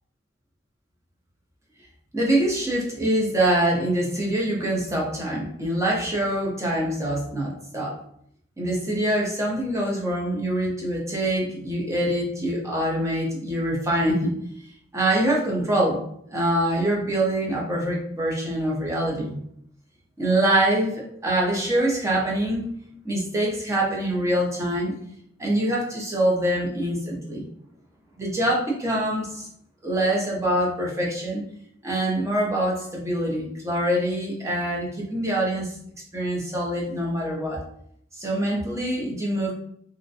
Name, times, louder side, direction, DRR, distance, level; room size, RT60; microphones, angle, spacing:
voice 1, 2.1-8.0 8.6-14.3 14.9-16.0 16.3-19.4 20.2-22.7 23.0-24.9 25.4-27.4 28.2-29.5 29.8-31.4 31.8-35.7 36.1-37.6 38.2-39.5, right 1 dB, 15° right, -3 dB, 0.6 m, -24 dB
2.4 x 2.1 x 2.6 m, 0.68 s
head